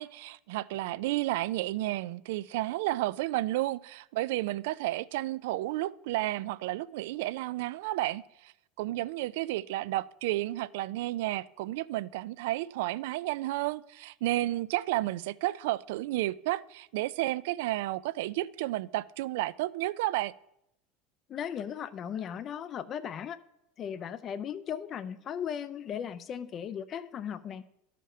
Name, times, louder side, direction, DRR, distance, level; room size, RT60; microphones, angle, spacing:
voice 1, 0.0-8.5 8.8-20.3, right 17 dB, 75° right, 0.3 m, -32 dB
voice 2, 21.3-23.4 23.8-27.6, left 8 dB, 40° left, 0.4 m, -37 dB
12.0 x 5.0 x 5.5 m
supercardioid pair, 115°, 0 cm